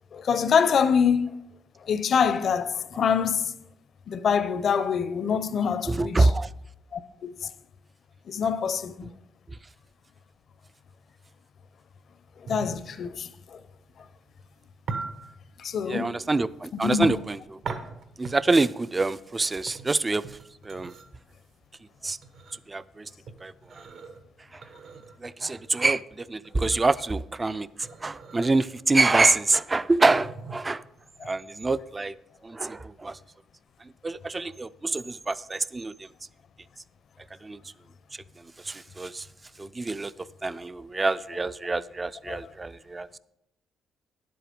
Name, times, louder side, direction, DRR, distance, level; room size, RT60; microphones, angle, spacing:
voice 1, 0.1-1.3 1.9-3.5 4.1-6.3 6.9-7.5 8.3-9.1 12.5-13.6 15.6-16.2 16.8-17.1 31.2-31.3 42.3-42.4, left 7 dB, 60° left, 0.6 m, -25 dB
voice 2, 5.9-6.5 15.9-17.8 18.2-20.4 20.6-20.9 22.0-22.2 22.7-23.1 23.4-23.8 24.5-24.7 25.2-30.8 31.3-32.1 32.4-33.2 34.0-36.1 37.4-37.6 38.6-39.3 39.6-40.1 40.4-43.1, right 3 dB, 25° right, 0.3 m, -26 dB
sound 1, 12.4-32.0, right 4 dB, 70° right, 1.2 m, -41 dB
10.5 x 7.8 x 5.1 m
cardioid pair, 90°, 0 cm